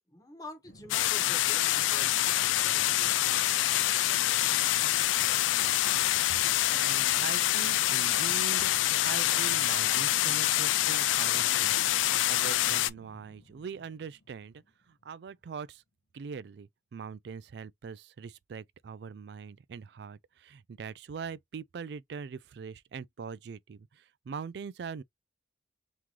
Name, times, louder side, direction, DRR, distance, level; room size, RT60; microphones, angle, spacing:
voice 1, 0.1-3.2, left 1 dB, 20° left, 1.2 m, -47 dB
sound 1, 0.6-15.1, left 1 dB, 65° left, 0.8 m, -53 dB
sound 2, 0.9-12.9, left 14 dB, 85° left, 0.3 m, -26 dB
voice 2, 6.7-11.9 12.3-15.8 16.1-25.0, right 6 dB, 60° right, 0.3 m, -42 dB
3.7 x 3.1 x 3.0 m
head